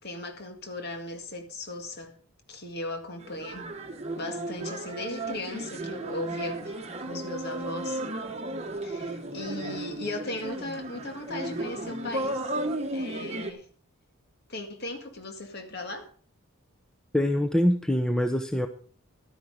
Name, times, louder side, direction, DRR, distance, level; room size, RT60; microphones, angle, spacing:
voice 1, 0.0-2.2 2.5-3.7 4.2-8.0 8.8-12.6 12.9-13.7 14.5-16.1, left 2 dB, 50° left, 2.0 m, -37 dB
sound 1, 3.2-13.5, right 1 dB, 30° right, 1.2 m, -34 dB
voice 2, 17.1-18.7, left 1 dB, 5° left, 0.7 m, -24 dB
12.5 x 10.0 x 5.0 m
head